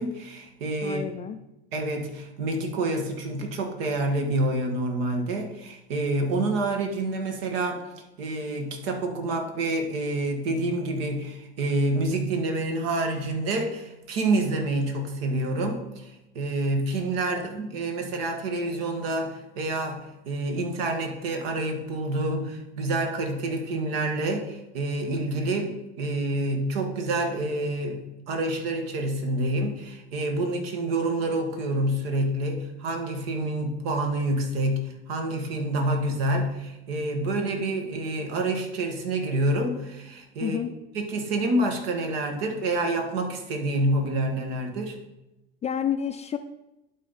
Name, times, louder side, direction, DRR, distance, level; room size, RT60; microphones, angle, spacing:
voice 1, 0.0-1.0 1.7-7.9 8.2-40.6 40.9-45.0, right 2 dB, 65° right, 4 dB, 1.7 m, -28 dB
voice 2, 0.8-1.4 17.3-17.5 40.4-40.7 45.6-46.4, left 8 dB, 20° left, 8 dB, 0.4 m, -29 dB
11.5 x 4.1 x 4.2 m, 0.94 s
hypercardioid pair, 80°, 32 cm